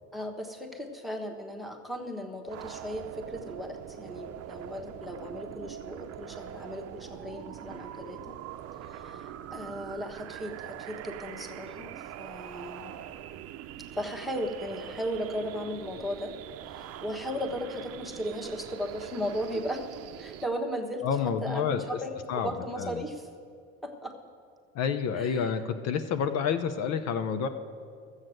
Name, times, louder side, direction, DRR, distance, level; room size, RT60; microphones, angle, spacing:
voice 1, 0.1-8.4 8.9-12.9 13.9-16.3 16.7-19.9 20.2-23.3 23.8-24.1 25.1-25.5, equal, ahead, 2 dB, 1.2 m, -36 dB
sound 1, 2.4-20.4, right 11 dB, 55° right, 0.6 m, -43 dB
voice 2, 21.0-22.0 22.3-22.5 22.8-23.0 24.7-27.5, left 7 dB, 60° left, 9 dB, 0.8 m, -29 dB
13.0 x 8.0 x 7.7 m, 2.2 s
supercardioid pair, 110°, 29 cm